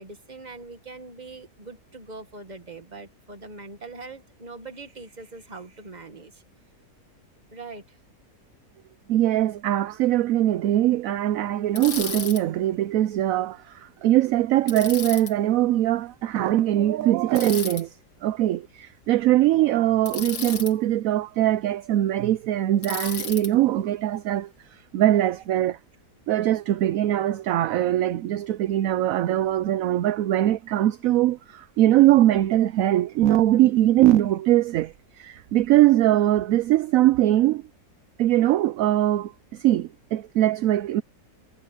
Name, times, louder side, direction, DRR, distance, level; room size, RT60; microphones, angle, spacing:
voice 1, 0.0-6.4 7.5-8.0, right 3 dB, 25° right, 1.8 m, -42 dB
voice 2, 9.1-13.6 14.0-17.9 18.2-24.5 24.9-25.8 26.3-37.6 38.2-39.3 39.6-41.0, right 13 dB, 70° right, 0.9 m, -21 dB
Bicycle, 11.7-12.4 14.7-15.3 17.3-17.8 20.1-20.7 22.8-23.5, left 6 dB, 80° left, 2.4 m, -33 dB
omnidirectional pair, 1.7 m